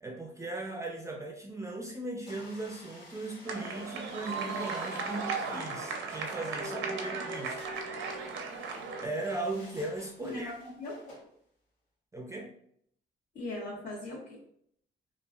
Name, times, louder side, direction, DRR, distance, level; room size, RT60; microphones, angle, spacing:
voice 1, 0.0-7.7 9.0-10.5 12.1-12.5, right 2 dB, 15° right, 1 dB, 0.4 m, -38 dB
sound 1, 2.3-11.2, left 1 dB, 90° left, 1.2 m, -53 dB
sound 2, 3.4-9.1, right 4 dB, 75° right, 0.5 m, -36 dB
voice 2, 10.2-11.3 13.3-14.4, left 2 dB, 70° left, -10 dB, 1.3 m, -40 dB
3.0 x 2.4 x 2.3 m, 0.67 s
cardioid pair, 90°, 20 cm